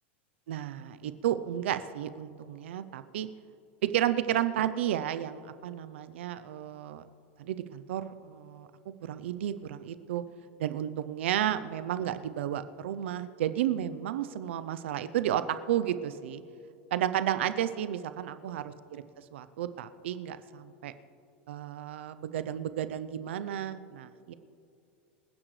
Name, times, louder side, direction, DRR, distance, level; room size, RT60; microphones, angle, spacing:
voice 1, 0.5-3.3 3.8-7.1 7.4-8.7 9.0-10.2 10.6-16.4 16.9-19.0 19.3-20.9 21.5-24.3, right 11 dB, 85° right, 12 dB, 0.6 m, -32 dB
26.0 x 10.0 x 3.3 m, 2.6 s
supercardioid pair, 155°, 6 cm